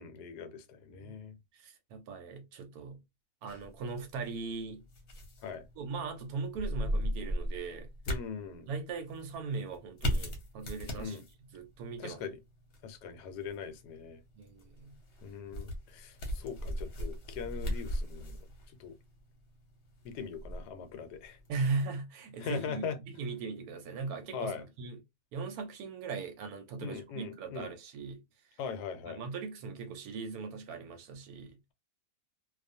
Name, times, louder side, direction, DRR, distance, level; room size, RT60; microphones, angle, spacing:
voice 1, 0.0-1.4 5.4-5.6 8.1-8.7 11.0-11.2 12.0-12.4 12.8-14.2 15.2-18.4 18.8-19.0 20.0-21.4 22.4-23.0 24.3-24.6 26.8-27.7 28.6-29.2, left 6 dB, 80° left, 1.1 m, -41 dB
voice 2, 1.5-3.0 3.4-4.8 5.8-7.9 8.7-11.2 11.5-12.2 14.4-15.0 21.5-25.0 25.3-28.2 29.1-31.6, right 4 dB, 75° right, 1.0 m, -39 dB
sound 1, 3.5-21.5, equal, 50° left, 1.0 m, -39 dB
2.4 x 2.3 x 2.5 m
omnidirectional pair, 1.7 m